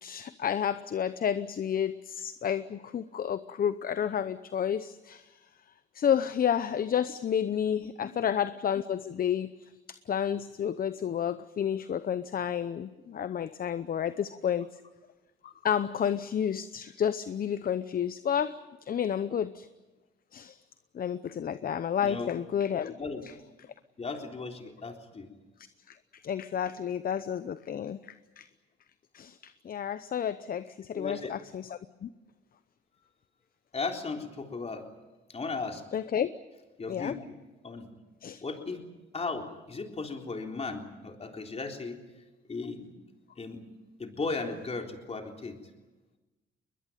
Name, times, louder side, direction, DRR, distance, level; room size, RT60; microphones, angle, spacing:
voice 1, 0.0-5.4 5.9-14.7 15.4-19.7 20.3-20.6 20.9-22.9 25.9-28.5 29.1-32.1 35.9-36.3 36.9-37.2 38.2-38.4, left 8 dB, 50° left, 13 dB, 0.8 m, -31 dB
voice 2, 24.0-25.3 30.9-31.3 33.7-34.9 35.3-35.8 36.8-37.2 37.6-37.9 38.4-38.8 39.1-42.0 42.5-42.9 43.4-43.6 44.0-45.6, left 4 dB, 30° left, 3 dB, 3.8 m, -36 dB
21.5 x 21.5 x 9.2 m, 1.1 s
cardioid pair, 90°, 20 cm